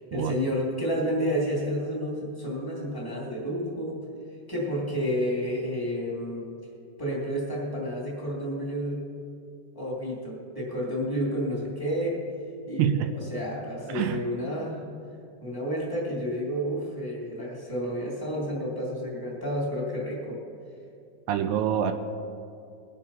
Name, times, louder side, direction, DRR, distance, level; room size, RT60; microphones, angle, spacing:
voice 1, 0.1-4.0 4.5-6.5 7.0-9.0 9.7-12.2 12.6-14.8 15.4-20.4, equal, 5° left, -5 dB, 1.8 m, -30 dB
voice 2, 12.8-13.2 13.9-14.3 21.3-21.9, right 9 dB, 80° right, 7 dB, 2.6 m, -26 dB
21.5 x 7.4 x 5.6 m, 2.5 s
omnidirectional pair, 4.9 m